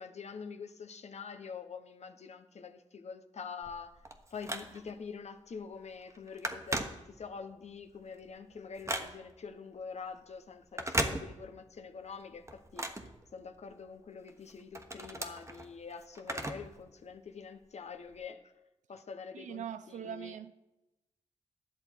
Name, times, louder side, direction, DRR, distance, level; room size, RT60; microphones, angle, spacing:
voice 1, 0.0-3.9 4.3-12.9 13.3-18.4 18.9-20.3, left 5 dB, 60° left, 0.9 m, -45 dB
Telephone, 3.6-5.1 5.5-5.8 6.0-7.5 7.9-9.5 10.6-11.7 12.1-13.8 14.3-16.8 17.1-17.2 18.1-18.2, right 1 dB, 20° right, 1.2 m, -37 dB
voice 2, 19.3-20.5, right 9 dB, 80° right, 0.5 m, -42 dB
10.5 x 7.1 x 4.4 m
supercardioid pair, 45°, 13 cm